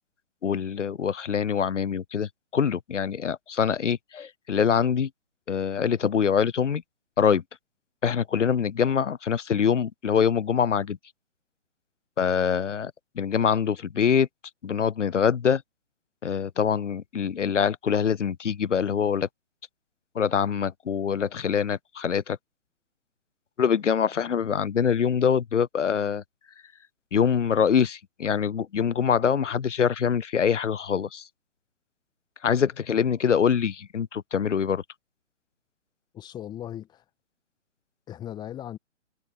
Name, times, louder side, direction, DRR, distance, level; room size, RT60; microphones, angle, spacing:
voice 1, 0.4-5.1 5.5-6.8 7.2-7.4 8.0-11.0 12.2-14.3 14.6-15.6 16.2-19.3 20.1-22.4 23.6-26.2 27.1-31.3 32.4-34.8, left 7 dB, 75° left, 0.6 m, -24 dB
voice 2, 36.1-37.0 38.1-38.8, left 11 dB, 10° left, 1.4 m, -38 dB
figure-of-eight pair, 130°, 36 cm